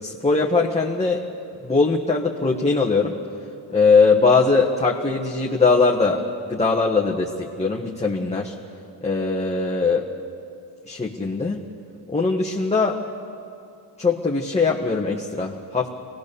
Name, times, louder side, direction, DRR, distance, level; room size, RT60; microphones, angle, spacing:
voice 1, 0.0-1.2 1.6-3.2 3.7-6.2 6.5-8.5 9.0-10.1 10.9-11.6 12.1-13.0 14.0-15.9, left 4 dB, 15° left, -2 dB, 1.4 m, -20 dB
23.0 x 18.5 x 6.9 m, 2.6 s
cardioid pair, 85°, 47 cm